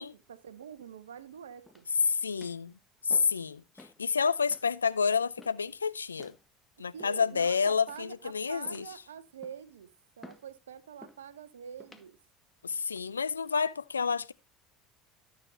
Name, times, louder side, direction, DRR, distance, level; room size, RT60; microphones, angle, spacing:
voice 1, 0.0-1.9 6.9-9.9 10.2-12.2, right 7 dB, 80° right, 1.0 m, -46 dB
sound 1, 1.7-2.0 2.4-2.7 3.1-3.4 3.8-4.0 4.5-4.7 5.4-5.7 6.2-6.4 7.0-7.4 7.9-8.3 8.6-9.0 9.4-9.7 10.2-10.5 11.0-11.3 11.8-12.1 12.7-13.0, left 2 dB, 10° left, 1.6 m, -53 dB
voice 2, 2.1-2.7 3.1-3.6 4.0-6.3 6.8-8.8 12.6-14.3, left 5 dB, 85° left, 0.5 m, -29 dB
13.0 x 7.0 x 3.0 m
figure-of-eight pair, 65°, 0 cm